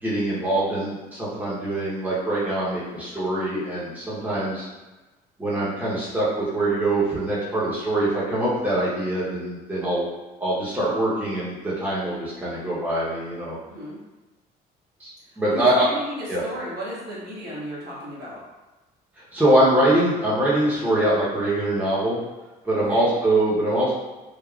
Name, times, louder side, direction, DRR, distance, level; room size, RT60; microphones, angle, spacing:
voice 1, 0.0-4.7 5.4-10.1 10.4-13.6 15.0-15.9 16.3-16.4 19.3-22.2 22.6-23.9, right 1 dB, 10° right, -8 dB, 0.9 m, -23 dB
voice 2, 13.7-14.0 15.3-18.4 22.7-23.1, equal, 65° right, -8 dB, 1.3 m, -35 dB
3.4 x 2.1 x 2.3 m, 1.1 s
cardioid pair, 110°, 17 cm